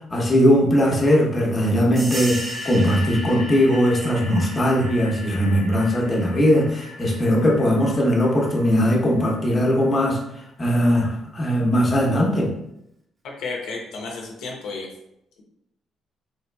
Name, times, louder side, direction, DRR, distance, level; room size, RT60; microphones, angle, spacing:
voice 1, 0.1-10.2 10.6-12.5, equal, 30° left, -2 dB, 0.8 m, -19 dB
sound 1, 2.0-10.2, left 1 dB, 30° right, 0.7 m, -36 dB
voice 2, 13.4-14.9, left 3 dB, 85° left, -1 dB, 0.6 m, -32 dB
3.3 x 2.8 x 2.2 m, 0.79 s
cardioid pair, 90°, 0 cm